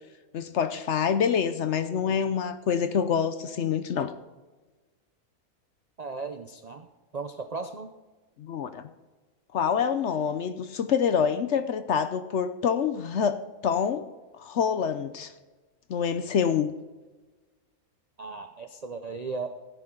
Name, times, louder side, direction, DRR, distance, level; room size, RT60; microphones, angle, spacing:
voice 1, 0.3-4.1 8.4-8.9 9.5-13.4 13.6-14.0 14.3-15.3 15.9-16.7, left 7 dB, 60° left, 11 dB, 0.9 m, -26 dB
voice 2, 6.0-6.9 7.1-7.9 18.2-19.5, right 4 dB, 50° right, 7 dB, 0.4 m, -36 dB
16.5 x 9.6 x 3.8 m, 1.2 s
omnidirectional pair, 1.5 m